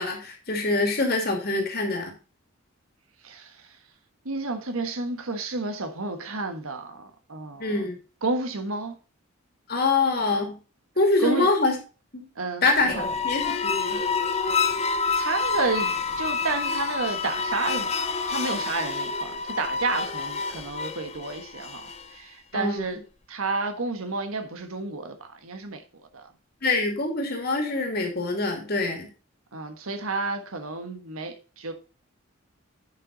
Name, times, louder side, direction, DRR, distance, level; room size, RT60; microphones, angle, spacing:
voice 1, 0.0-2.1 7.6-8.0 9.7-10.6 11.0-11.7 12.1-12.3 12.6-12.9 13.2-14.0 22.5-23.0 26.6-29.1, left 3 dB, 45° left, 2.4 m, -25 dB
voice 2, 3.2-3.8 4.2-7.9 8.2-9.0 11.2-11.5 12.3-12.7 12.9-13.1 14.6-14.9 15.2-17.9 18.3-23.0 23.3-25.8 26.1-26.3 29.5-31.7, right 3 dB, 85° right, 1.4 m, -31 dB
sound 1, 12.8-22.2, left 4 dB, 30° left, 0.5 m, -28 dB
9.7 x 5.8 x 4.0 m
head